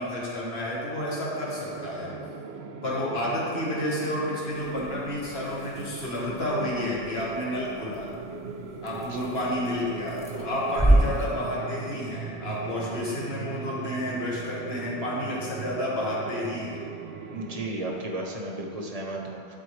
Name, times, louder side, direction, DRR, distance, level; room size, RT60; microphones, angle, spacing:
voice 1, 0.0-2.1 2.8-8.1 8.8-16.8, left 1 dB, 75° left, -6 dB, 1.8 m, -30 dB
sound 1, 0.9-17.7, right 5 dB, 85° right, 0.8 m, -39 dB
sound 2, 4.5-11.5, right 1 dB, 5° left, 0.8 m, -30 dB
voice 2, 17.3-19.5, right 2 dB, 40° right, 0 dB, 0.9 m, -34 dB
12.0 x 4.1 x 3.2 m, 2.4 s
omnidirectional pair, 1.0 m